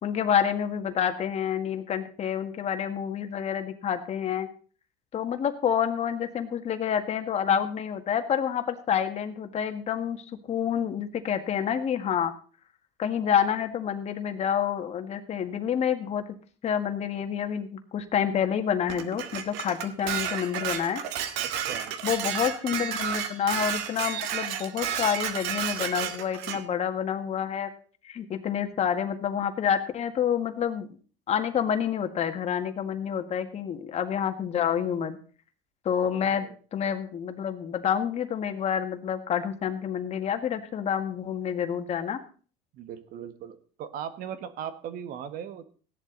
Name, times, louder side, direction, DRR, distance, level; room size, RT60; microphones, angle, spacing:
voice 1, 0.0-4.5 5.1-12.3 13.0-16.2 16.6-21.0 22.0-27.7 28.0-30.9 31.3-35.2 35.9-42.2, left 8 dB, 40° left, 7 dB, 1.9 m, -28 dB
Dishes pots and pans, 18.9-26.6, right 8 dB, 75° right, 1.9 m, -31 dB
voice 2, 21.4-21.9 36.2-36.5 42.7-45.7, right 9 dB, 55° right, 11 dB, 1.6 m, -38 dB
16.0 x 11.0 x 4.0 m, 0.40 s
cardioid pair, 120°, 17 cm